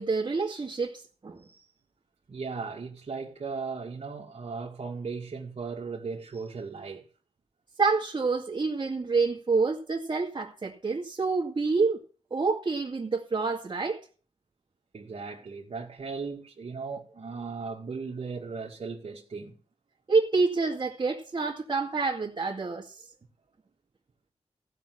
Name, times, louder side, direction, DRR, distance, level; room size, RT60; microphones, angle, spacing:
voice 1, 0.0-1.4 7.8-12.0 12.3-14.0 20.1-23.0, right 4 dB, 40° right, 2.2 m, -27 dB
voice 2, 2.3-7.0 14.9-19.6, right 4 dB, 60° right, 2.1 m, -37 dB
15.5 x 6.0 x 7.9 m
cardioid pair, 60°, 12 cm